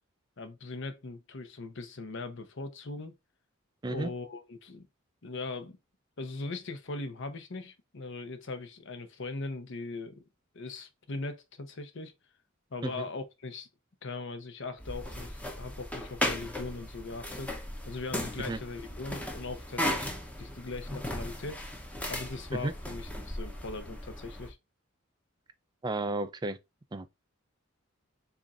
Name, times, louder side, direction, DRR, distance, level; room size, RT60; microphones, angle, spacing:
voice 1, 0.4-3.1 3.9-4.9 5.2-5.8 6.2-10.2 10.5-12.1 12.7-13.7 14.0-17.5 17.9-20.1 20.4-21.7 22.1-24.6, left 3 dB, 65° left, 0.8 m, -40 dB
voice 2, 3.8-4.1 12.8-13.0 18.4-18.6 22.6-22.7 25.8-26.6 26.9-27.1, right 2 dB, 20° right, 0.4 m, -32 dB
sound 1, 14.8-24.5, left 1 dB, 5° left, 0.8 m, -37 dB
6.9 x 2.5 x 2.5 m
head